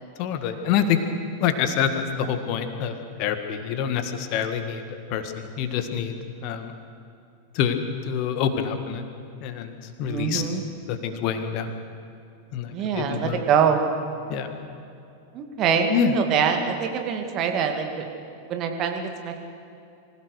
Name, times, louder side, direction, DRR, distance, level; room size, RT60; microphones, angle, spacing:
voice 1, 0.2-1.0 1.4-6.7 7.5-7.8 8.0-9.0 9.4-9.7 10.0-10.5 10.9-11.7 12.5-13.4 14.3-14.5 15.9-16.1, left 8 dB, 45° left, 8 dB, 1.8 m, -26 dB
voice 2, 10.1-10.6 12.7-13.9 15.3-18.1 18.5-19.4, right 7 dB, 35° right, 4 dB, 2.3 m, -24 dB
25.0 x 16.0 x 6.6 m, 2.6 s
figure-of-eight pair, 90°, 0 cm